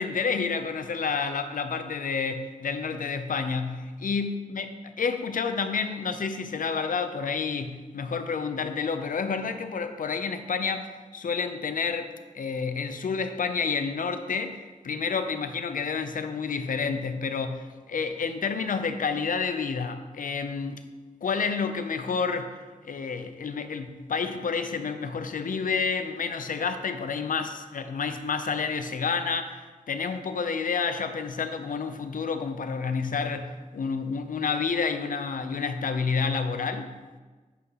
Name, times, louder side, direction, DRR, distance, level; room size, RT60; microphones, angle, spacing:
voice 1, 0.0-20.9 21.2-22.6 22.8-37.0, left 5 dB, 75° left, 9 dB, 0.6 m, -29 dB
8.3 x 3.7 x 5.5 m, 1.3 s
wide cardioid pair, 85°, 14 cm